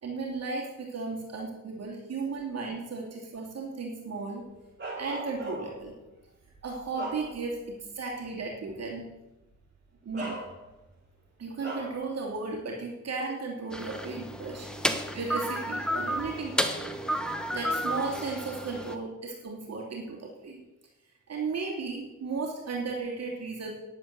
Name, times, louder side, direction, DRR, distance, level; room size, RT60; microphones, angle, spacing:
voice 1, 0.0-4.4 5.0-5.9 6.6-9.1 10.0-10.3 11.4-14.9 15.1-17.0 17.5-20.6 21.3-23.7, right 4 dB, 55° right, -2 dB, 2.8 m, -35 dB
Bark, 4.8-5.9 6.5-7.7 8.1-8.3 9.4-9.6 10.1-10.9 11.6-12.0, right 2 dB, 35° right, 5.7 m, -39 dB
sound 1, 13.7-19.0, equal, 5° left, 1.2 m, -32 dB
10.5 x 9.2 x 6.7 m, 1.0 s
cardioid pair, 100°, 31 cm